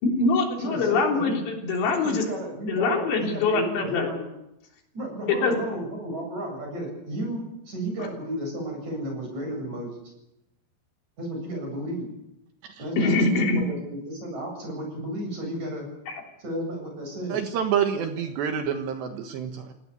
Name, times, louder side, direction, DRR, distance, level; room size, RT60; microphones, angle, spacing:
voice 1, 0.0-2.2 2.7-4.1 5.3-5.6 13.0-13.6 16.1-16.2, left 3 dB, 70° left, 2 dB, 5.6 m, -23 dB
voice 2, 0.6-1.4 2.0-4.2 4.9-9.9 11.2-12.1 12.8-13.2 13.7-15.9 16.4-17.5, right 1 dB, 40° right, 1 dB, 9.1 m, -33 dB
voice 3, 17.3-19.7, right 8 dB, 70° right, 6 dB, 3.4 m, -27 dB
26.0 x 18.5 x 8.4 m, 0.87 s
omnidirectional pair, 5.3 m